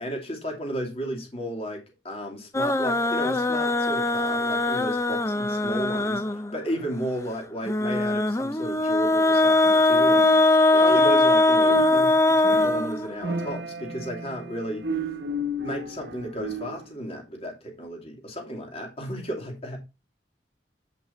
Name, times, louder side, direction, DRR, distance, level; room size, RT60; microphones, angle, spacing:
voice 1, 0.0-10.3 10.7-15.0 15.6-19.8, equal, 35° left, 2.7 m, -33 dB
sound 1, 2.5-6.6 7.7-13.5, left 2 dB, 15° left, 0.6 m, -21 dB
sound 2, 10.0-11.4 11.6-16.9, right 2 dB, 70° right, 1.1 m, -33 dB
9.0 x 5.3 x 4.1 m
head